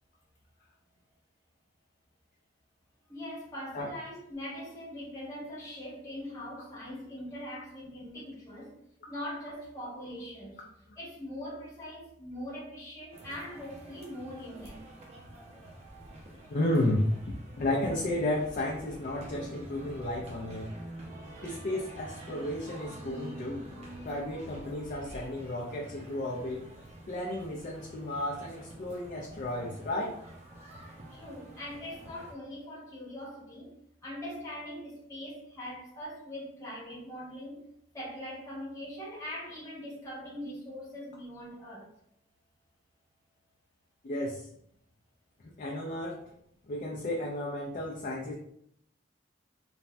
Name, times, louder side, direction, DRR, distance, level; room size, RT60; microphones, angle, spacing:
voice 1, 3.1-8.7 9.1-10.6 11.0-14.8 31.1-33.7 34.0-37.6 37.9-41.9, left 1 dB, 20° left, -6 dB, 1.1 m, -42 dB
sound 1, 13.1-32.3, right 1 dB, 35° right, 0.6 m, -47 dB
voice 2, 16.5-17.2 17.6-20.7 21.4-23.7 24.0-26.6 27.1-30.1 44.0-44.4 45.6-46.2 46.7-48.3, left 1 dB, 45° left, -2 dB, 0.4 m, -32 dB
3.1 x 2.2 x 2.5 m, 0.72 s
head